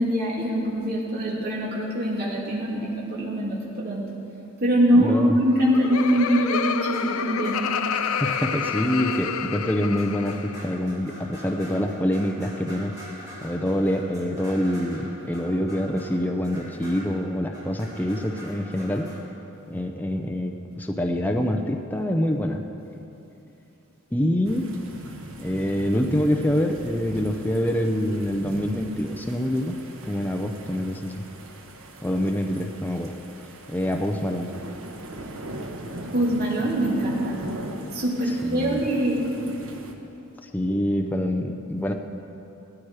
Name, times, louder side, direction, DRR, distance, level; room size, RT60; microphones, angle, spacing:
voice 1, 0.0-4.0 4.6-7.6 36.1-37.3 37.9-39.2, equal, 50° right, -5 dB, 3.0 m, -23 dB
voice 2, 4.9-5.3 8.2-12.9 13.4-19.1 19.7-22.6 24.1-24.6 25.4-29.8 30.1-31.2 32.0-33.1 33.7-34.5 38.5-38.8 40.5-41.9, equal, 10° left, 3 dB, 0.7 m, -25 dB
Laughter, 5.4-10.7, left 7 dB, 75° left, 0.6 m, -29 dB
sound 1, 6.9-19.2, equal, 15° right, 2.9 m, -44 dB
sound 2, 24.4-39.9, right 1 dB, 70° right, 1.3 m, -39 dB
18.0 x 13.5 x 4.9 m, 2.8 s
head